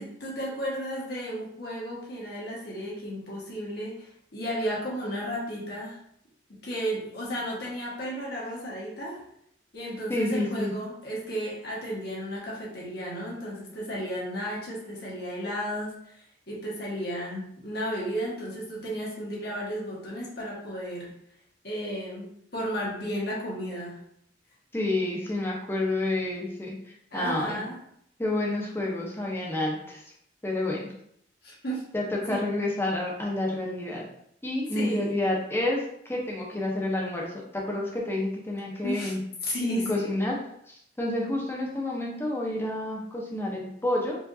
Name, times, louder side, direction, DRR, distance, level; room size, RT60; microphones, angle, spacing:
voice 1, 0.0-6.0 6.6-9.2 9.7-21.1 21.6-24.0 27.1-27.8 31.4-31.8 32.3-32.4 34.7-35.1 38.8-39.1 39.4-40.1, equal, 60° left, -5 dB, 1.3 m, -33 dB
voice 2, 10.1-10.7 24.7-26.8 27.1-27.6 28.2-30.0 30.4-30.9 31.9-34.1 34.4-39.2 39.9-40.4 40.7-44.2, left 1 dB, 15° left, -2 dB, 0.7 m, -29 dB
4.7 x 2.5 x 2.6 m, 0.71 s
head